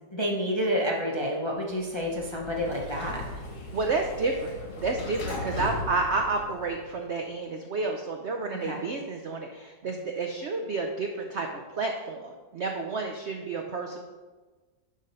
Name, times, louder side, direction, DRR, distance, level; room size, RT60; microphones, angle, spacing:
voice 1, 0.1-3.4 8.6-8.8, equal, 25° left, -2 dB, 0.7 m, -29 dB
Sliding door, 1.8-7.0, left 2 dB, 50° left, 1.6 m, -38 dB
voice 2, 3.7-14.0, right 3 dB, 65° right, 3 dB, 0.7 m, -30 dB
10.5 x 3.8 x 5.5 m, 1.3 s
omnidirectional pair, 1.9 m